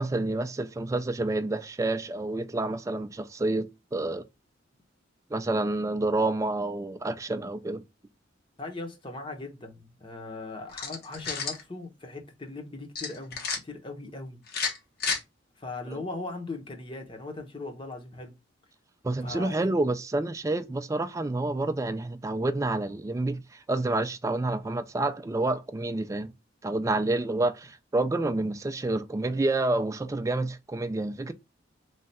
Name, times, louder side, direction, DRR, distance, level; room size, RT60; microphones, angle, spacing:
voice 1, 0.0-4.3 5.3-7.8 19.0-26.3 26.6-31.3, right 2 dB, 15° right, 0.3 m, -28 dB
voice 2, 8.6-14.4 15.6-18.3 19.2-19.7, left 2 dB, 25° left, 0.8 m, -39 dB
sound 1, 10.7-11.6 12.9-13.6 14.5-15.2, left 5 dB, 55° left, 1.0 m, -31 dB
3.2 x 2.3 x 4.0 m
head